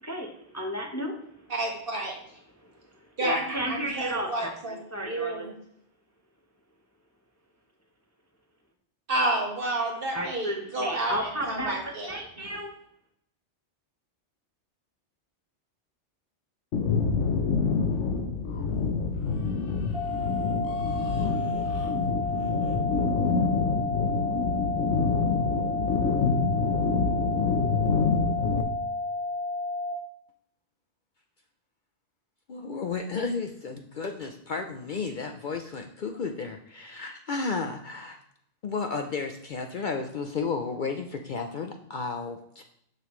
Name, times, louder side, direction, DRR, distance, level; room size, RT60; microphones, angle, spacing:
voice 1, 0.0-1.1 2.6-2.7 3.2-5.5 10.1-12.7, equal, 15° left, 1 dB, 0.8 m, -33 dB
voice 2, 1.5-2.2 3.2-5.5 9.1-12.5, right 2 dB, 50° right, -1 dB, 1.7 m, -30 dB
sound 1, 16.7-28.6, left 5 dB, 85° left, 1.1 m, -26 dB
sound 2, 19.9-29.9, left 2 dB, 35° right, 1.0 m, -32 dB
voice 3, 32.5-38.2 38.6-42.6, left 4 dB, 55° left, 4 dB, 0.6 m, -33 dB
6.8 x 6.6 x 3.1 m, 0.71 s
omnidirectional pair, 1.2 m